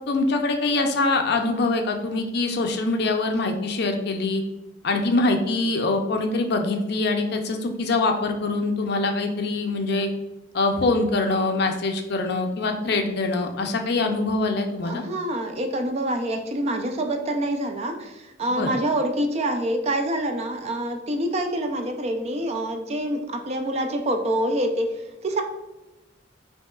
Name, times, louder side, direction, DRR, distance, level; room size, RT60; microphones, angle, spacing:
voice 1, 0.1-4.4 4.8-10.1 10.5-15.0 18.5-18.7, left 3 dB, 55° left, 5 dB, 0.5 m, -24 dB
voice 2, 14.8-25.4, right 1 dB, 35° right, 5 dB, 0.4 m, -26 dB
5.4 x 2.9 x 2.3 m, 1.0 s
head